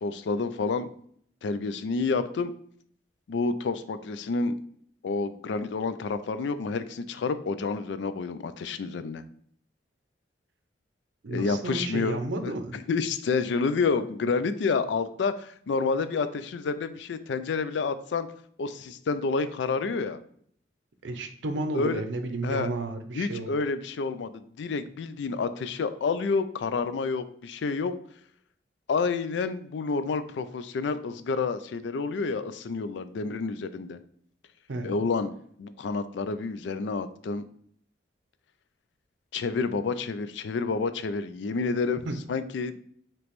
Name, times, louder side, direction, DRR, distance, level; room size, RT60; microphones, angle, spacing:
voice 1, 0.0-0.9 1.4-2.5 3.3-4.5 5.0-9.2 11.3-18.3 18.6-20.2 21.7-22.0 22.4-22.7 23.1-27.9 28.9-34.0 34.8-35.3 35.6-37.4 39.3-42.0 42.3-42.8, left 4 dB, 70° left, 12 dB, 0.4 m, -29 dB
voice 2, 11.2-12.8 21.0-23.6 34.7-35.0 42.1-42.2, right 2 dB, 75° right, 7 dB, 0.5 m, -32 dB
5.1 x 3.0 x 3.0 m, 0.62 s
head